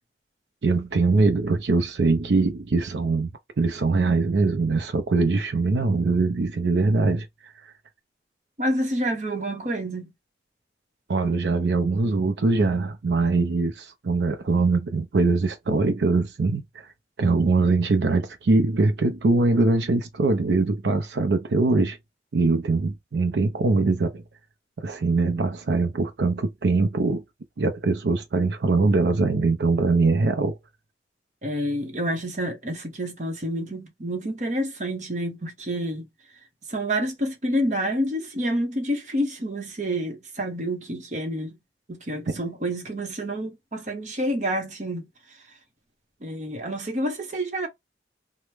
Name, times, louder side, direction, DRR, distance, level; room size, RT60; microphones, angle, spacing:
voice 1, 0.6-3.3 3.6-7.7 11.1-16.9 17.2-22.0 22.3-24.2 24.8-27.2 27.6-30.6 42.3-42.4, right 3 dB, 75° right, 0.5 m, -22 dB
voice 2, 8.6-10.1 31.4-36.1 36.7-41.6 41.9-45.1 46.2-47.7, equal, 40° right, 0.9 m, -28 dB
3.0 x 2.1 x 3.2 m
head